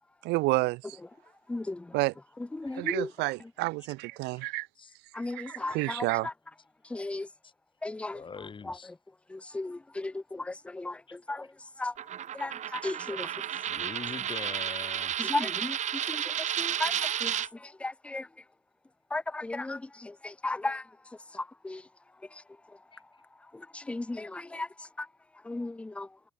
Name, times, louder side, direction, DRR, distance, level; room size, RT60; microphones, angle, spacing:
voice 1, 0.2-0.8 1.9-2.1 2.8-4.7 5.3-6.3, right 22 dB, 90° right, 0.6 m, -29 dB
voice 2, 1.5-1.8 2.5-3.1 5.1-6.3 6.9-7.3 7.8-8.2 8.7-8.8 9.3-11.0 11.3-11.5 11.8-11.9 12.3-13.3 15.2-15.8 16.1-16.2 16.6-16.9 17.2-17.4 17.8-18.3 19.1-20.8 21.6-21.8 23.7-24.7 25.5-26.1, left 2 dB, 5° left, 0.4 m, -35 dB
voice 3, 8.1-8.9 11.4-11.5 13.7-15.1 22.9-23.0, left 5 dB, 30° left, 3.6 m, -42 dB
Coin (dropping), 12.0-17.5, right 10 dB, 45° right, 0.7 m, -32 dB
cardioid pair, 110°, 17 cm